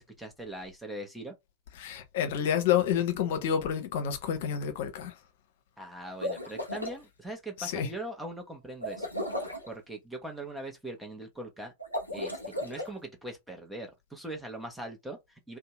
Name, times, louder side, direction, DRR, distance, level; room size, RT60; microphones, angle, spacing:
voice 1, 0.0-1.3 5.8-9.1 9.7-11.7 12.1-15.6, right 1 dB, 5° right, 0.8 m, -41 dB
voice 2, 1.8-5.1 7.6-7.9, left 9 dB, 55° left, 0.7 m, -29 dB
sound 1, 6.0-7.0 8.8-9.7 11.8-12.9, left 1 dB, 90° right, 0.7 m, -35 dB
2.7 x 2.1 x 2.9 m
figure-of-eight pair, 90°, 0 cm